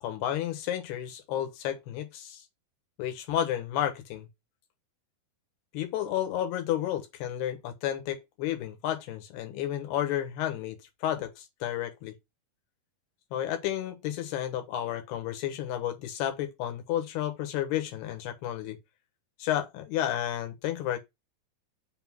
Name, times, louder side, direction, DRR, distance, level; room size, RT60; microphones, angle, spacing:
voice 1, 0.0-2.4 3.0-4.3 5.7-12.1 13.3-18.8 19.4-21.0, left 11 dB, 90° left, 3.3 m, -32 dB
6.9 x 3.7 x 6.0 m
omnidirectional pair, 4.5 m